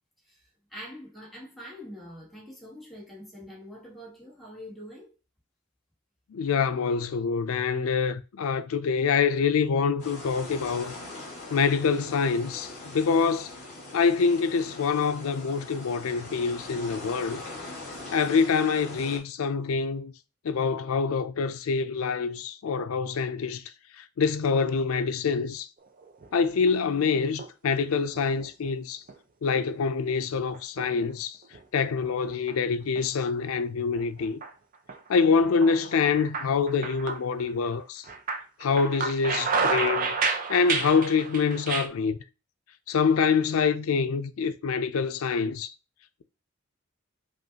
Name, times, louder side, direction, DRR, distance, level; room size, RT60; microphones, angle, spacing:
voice 1, 0.7-5.1, equal, ahead, 1.3 m, -44 dB
voice 2, 6.3-10.9 11.5-13.5 13.9-17.4 18.1-20.1 20.4-23.6 24.2-25.7 26.3-29.0 29.4-31.4 31.7-34.4 35.1-38.0 38.6-40.2 40.5-42.2 42.9-45.7, left 5 dB, 90° left, 0.4 m, -25 dB
sound 1, 10.0-19.2, left 2 dB, 35° left, 2.0 m, -42 dB
sound 2, 26.0-26.7 27.1-27.8 28.1-28.7 29.1-29.2 30.1-31.1 31.5-32.5 33.0-33.1 34.0-34.5 34.9-35.1 35.4-37.8 38.0-41.9, right 4 dB, 40° right, 0.5 m, -31 dB
5.2 x 2.4 x 2.8 m
head